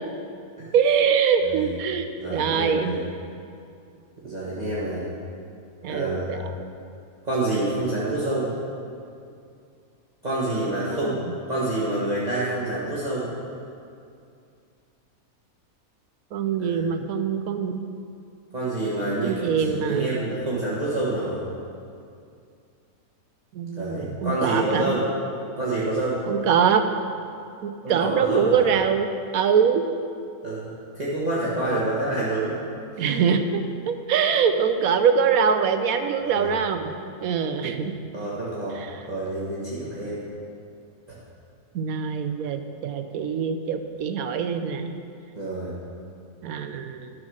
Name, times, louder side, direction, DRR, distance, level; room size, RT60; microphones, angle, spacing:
voice 1, 0.7-2.9 5.8-6.5 10.9-11.2 16.3-17.8 19.2-20.2 23.5-24.9 26.3-26.8 27.6-29.1 29.3-29.8 31.7-31.8 33.0-36.9 37.2-37.9 38.8-39.0 41.7-44.9 46.4-47.1, right 7 dB, 80° right, 8 dB, 1.1 m, -23 dB
voice 2, 1.4-1.7 2.2-3.0 4.2-5.1 5.9-6.4 7.2-8.5 10.2-11.1 11.5-13.3 16.6-16.8 18.5-21.4 23.8-25.1 25.6-26.2 27.8-28.6 30.4-32.5 33.0-33.2 36.2-36.5 37.7-37.8 38.1-38.8 39.1-40.2 45.4-45.7, right 2 dB, 30° right, -9 dB, 1.6 m, -27 dB
12.5 x 6.4 x 6.3 m, 2.5 s
omnidirectional pair, 1.5 m